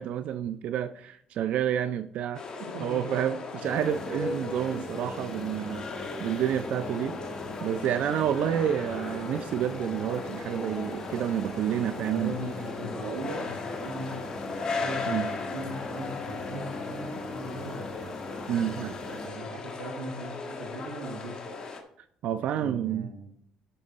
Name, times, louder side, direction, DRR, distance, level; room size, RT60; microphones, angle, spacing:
voice 1, 0.0-2.4 2.8-3.3 3.6-7.2 7.6-12.3 15.1-15.3 18.5-19.0 22.2-23.1, right 10 dB, 65° right, 11 dB, 0.4 m, -29 dB
sound 1, 2.3-21.8, left 4 dB, 35° left, 1.8 m, -38 dB
voice 2, 2.6-3.2 4.7-4.8 11.9-17.9 18.6-21.7 22.3-23.3, right 2 dB, 90° right, 5 dB, 1.7 m, -39 dB
Motorcycle, 3.6-19.3, left 2 dB, 10° left, 1.9 m, -40 dB
12.5 x 5.8 x 4.2 m, 0.69 s
cardioid pair, 105°, 2 cm